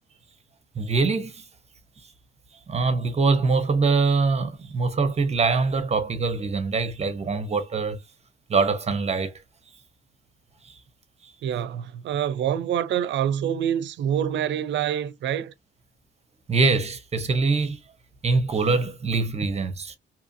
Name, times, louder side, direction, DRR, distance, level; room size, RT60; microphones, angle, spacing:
voice 1, 0.8-1.5 2.7-8.0 8.5-9.3 10.6-10.7 11.2-11.3 16.5-17.8 18.2-20.0, right 4 dB, 35° right, 0.7 m, -23 dB
voice 2, 11.4-15.5, right 9 dB, 70° right, 0.5 m, -26 dB
2.8 x 2.5 x 2.5 m
cardioid pair, 90°, 20 cm